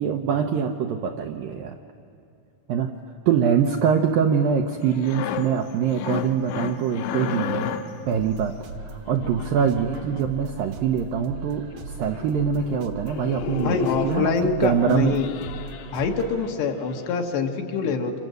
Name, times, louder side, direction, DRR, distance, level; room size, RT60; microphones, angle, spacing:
voice 1, 0.0-1.8 2.7-3.0 3.3-7.7 8.1-8.6 8.8-14.3 14.6-15.2, right 7 dB, 85° right, 4 dB, 2.0 m, -24 dB
sound 1, 4.8-8.1 9.1-10.2 11.4-11.5 11.7-11.8 12.1-12.4 12.6-12.8 13.1-14.4 14.9-16.5 16.9-17.1, left 9 dB, 85° left, 3.2 m, -32 dB
sound 2, 8.1-16.5, right 4 dB, 65° right, 1.9 m, -40 dB
voice 2, 13.6-15.3 15.9-18.2, left 5 dB, 70° left, 3 dB, 3.5 m, -25 dB
27.5 x 26.0 x 7.9 m, 2.5 s
omnidirectional pair, 5.2 m